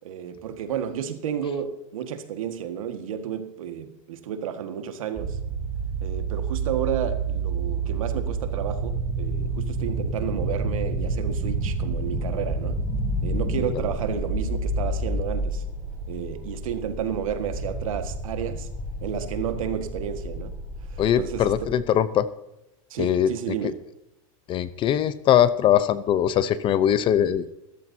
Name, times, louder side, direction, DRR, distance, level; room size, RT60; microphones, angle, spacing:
voice 1, 0.0-5.4 6.0-12.8 13.2-15.6 16.1-18.7 19.0-20.5 20.9-21.7 22.9-23.8, right 9 dB, 85° right, 1.7 m, -31 dB
sound 1, 5.2-21.7, right 2 dB, 15° right, 4.4 m, -29 dB
voice 2, 21.0-22.3 23.0-23.3 24.5-27.5, left 10 dB, 30° left, 0.7 m, -21 dB
15.5 x 14.0 x 2.8 m
supercardioid pair, 140°, 17 cm